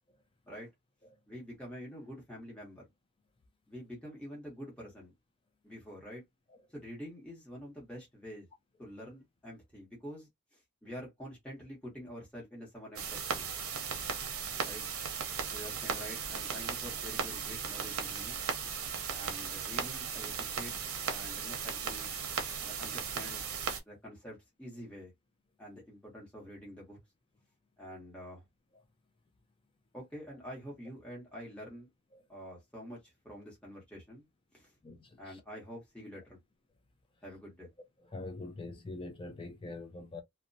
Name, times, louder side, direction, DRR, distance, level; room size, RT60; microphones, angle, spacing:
voice 1, 1.3-2.8 3.7-5.1 5.6-6.2 6.7-8.5 8.8-13.5 14.6-14.8 15.5-18.4 19.1-20.7 21.1-22.1 22.6-23.4 23.9-25.1 25.6-27.0 27.8-28.4 29.9-31.9 32.3-34.3 34.5-34.7 35.2-36.4 37.2-37.7, equal, 5° left, 1.0 m, -47 dB
sound 1, 13.0-23.8, right 6 dB, 75° right, 0.7 m, -37 dB
voice 2, 34.8-35.4 38.1-40.2, left 2 dB, 25° left, 0.5 m, -44 dB
2.7 x 2.1 x 2.6 m
head